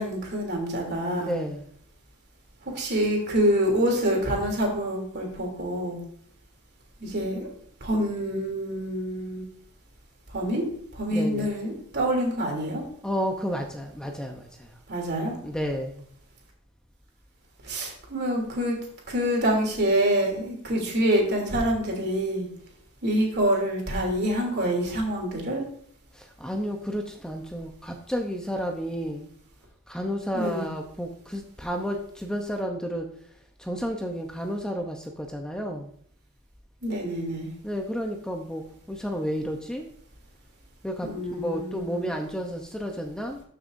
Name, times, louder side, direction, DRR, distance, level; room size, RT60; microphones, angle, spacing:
voice 1, 0.0-1.3 2.6-6.0 7.0-7.5 7.8-9.4 10.3-10.7 10.9-12.8 14.9-15.3 17.6-18.8 19.1-22.5 23.0-25.6 30.3-30.7 36.8-37.5 41.0-42.1, equal, 55° right, 0 dB, 3.0 m, -26 dB
voice 2, 1.2-1.7 11.1-11.5 13.0-14.7 15.4-16.0 26.1-29.3 29.9-33.1 33.6-35.9 37.6-39.9 40.8-43.4, equal, 5° left, 2 dB, 0.7 m, -31 dB
13.5 x 6.6 x 2.6 m, 0.63 s
head